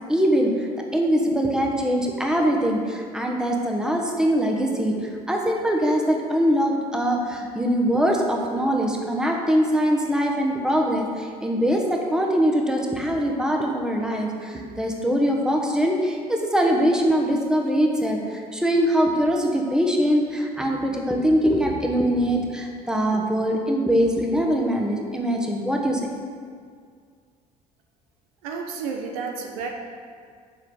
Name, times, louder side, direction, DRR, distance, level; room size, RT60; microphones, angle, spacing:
voice 1, 0.1-26.0, equal, 5° right, 1 dB, 1.2 m, -22 dB
voice 2, 28.4-29.7, right 5 dB, 65° right, 3 dB, 0.7 m, -31 dB
7.7 x 5.8 x 4.8 m, 2.1 s
figure-of-eight pair, 55°, 20 cm